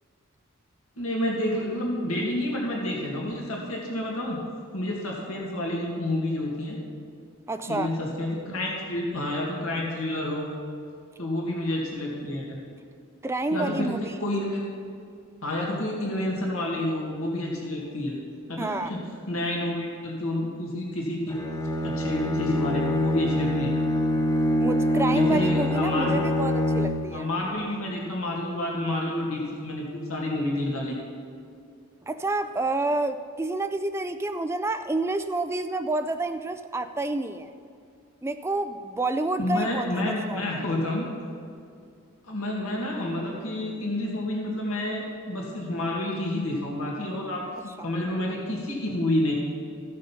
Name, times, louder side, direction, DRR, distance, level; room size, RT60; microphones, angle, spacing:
voice 1, 1.0-4.4 4.7-6.8 7.7-10.5 11.2-12.6 13.5-14.6 15.4-18.2 18.5-19.0 19.3-21.4 21.8-23.7 25.1-26.1 27.1-31.0 39.4-41.1 42.3-49.3, left 1 dB, 90° left, -2 dB, 2.0 m, -29 dB
voice 2, 7.5-7.9 13.2-14.1 18.6-18.9 24.6-27.3 32.1-37.5 38.2-40.6, right 2 dB, 10° right, 9 dB, 0.3 m, -29 dB
Bowed string instrument, 21.3-27.3, left 1 dB, 15° left, 0.7 m, -25 dB
15.5 x 6.5 x 5.7 m, 2.4 s
head